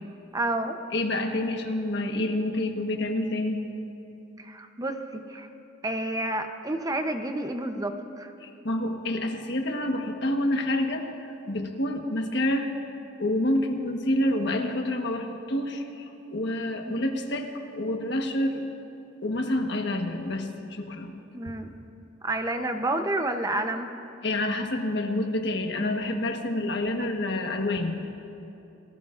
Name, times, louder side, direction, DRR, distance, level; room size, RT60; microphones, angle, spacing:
voice 1, 0.3-0.8 4.4-5.5 5.8-8.3 16.8-17.1 21.3-21.7 22.2-23.9, right 1 dB, 20° right, 6 dB, 0.8 m, -30 dB
voice 2, 0.9-3.6 8.4-12.7 13.2-18.6 19.2-21.1 21.4-21.5 24.2-28.0, left 1 dB, 65° left, 4 dB, 1.3 m, -28 dB
30.0 x 19.0 x 2.6 m, 2.8 s
head